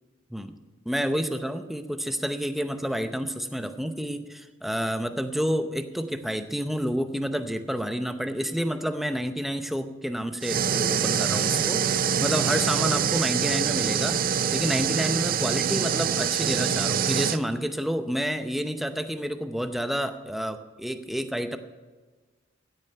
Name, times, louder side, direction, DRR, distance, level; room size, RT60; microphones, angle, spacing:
voice 1, 0.9-14.2 14.5-21.6, equal, ahead, 8 dB, 0.7 m, -29 dB
sound 1, 10.4-17.4, right 7 dB, 45° right, 0.5 m, -25 dB
16.0 x 8.8 x 5.7 m, 1.4 s
head